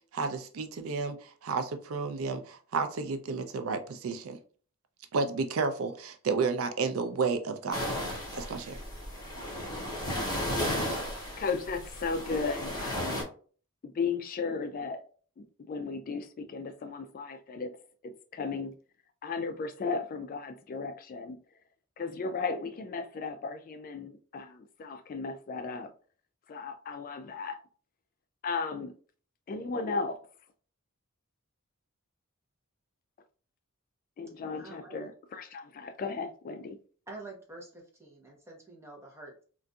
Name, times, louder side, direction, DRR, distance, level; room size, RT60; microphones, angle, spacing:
voice 1, 0.1-4.4 5.1-7.8 8.3-8.8, right 4 dB, 65° right, 0.4 m, -31 dB
sound 1, 7.7-13.2, left 1 dB, 20° left, 1.3 m, -34 dB
voice 2, 11.4-13.2 13.8-15.0 15.4-17.8 18.0-18.7 19.2-21.4 22.0-25.9 26.5-27.6 28.4-28.9 29.5-30.2 34.2-36.8, left 4 dB, 40° left, 0.3 m, -35 dB
voice 3, 34.6-35.1 37.1-39.4, right 3 dB, 10° right, 0.8 m, -47 dB
3.8 x 2.5 x 2.2 m
head